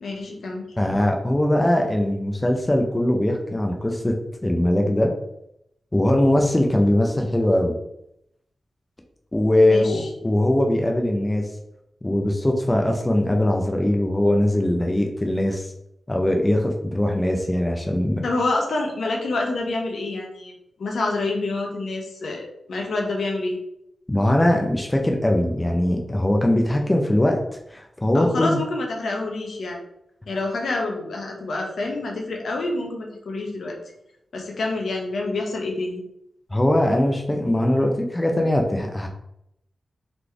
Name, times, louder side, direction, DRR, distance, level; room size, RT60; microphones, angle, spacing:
voice 1, 0.0-0.7 9.6-10.1 18.2-20.5 20.8-23.6 28.1-29.8 30.3-33.8 34.3-36.0, left 2 dB, 80° left, 1 dB, 0.9 m, -27 dB
voice 2, 0.8-4.1 4.4-5.1 5.9-7.7 9.3-11.4 12.0-15.7 16.1-18.2 24.1-27.4 27.7-28.6 36.5-39.1, left 1 dB, 15° left, 2 dB, 0.5 m, -21 dB
4.1 x 3.2 x 3.3 m, 0.79 s
wide cardioid pair, 110°, 0 cm